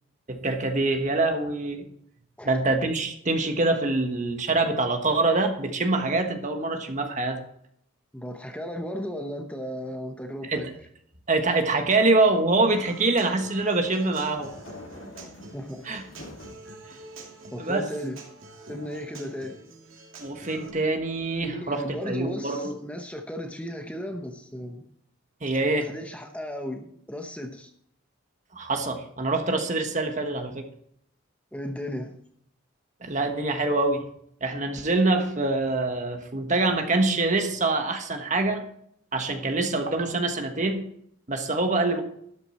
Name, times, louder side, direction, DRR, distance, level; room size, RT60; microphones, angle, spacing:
voice 1, 0.3-1.9 2.4-7.4 10.4-10.7 11.3-14.5 15.8-16.0 17.6-17.9 20.2-22.7 25.4-25.9 28.5-30.6 33.0-34.1 34.4-38.6 39.1-40.9 41.3-42.0, right 2 dB, 35° right, 5 dB, 1.4 m, -25 dB
voice 2, 8.1-10.7 15.2-15.9 17.5-18.2 18.7-19.6 21.4-24.9 25.9-27.7 31.5-32.1, equal, 5° left, 4 dB, 0.9 m, -35 dB
Human voice / Acoustic guitar, 12.7-20.7, right 2 dB, 80° right, 2.6 m, -46 dB
sound 1, 13.7-16.7 17.2-18.0, left 1 dB, 70° left, 2.4 m, -47 dB
12.5 x 9.1 x 4.3 m, 0.69 s
head